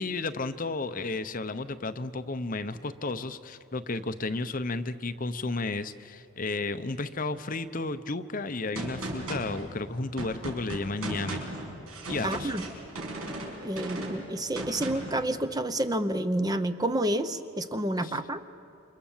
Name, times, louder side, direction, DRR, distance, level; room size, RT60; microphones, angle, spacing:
voice 1, 0.0-11.4 12.1-12.5 18.0-18.2, left 3 dB, 40° left, 11 dB, 0.7 m, -33 dB
Gunshot gunfire, 8.7-15.2, right 1 dB, 85° right, 5.9 m, -37 dB
voice 2, 12.2-12.6 13.6-18.4, right 1 dB, 15° right, 10 dB, 0.7 m, -29 dB
29.0 x 26.5 x 7.3 m, 2.6 s
head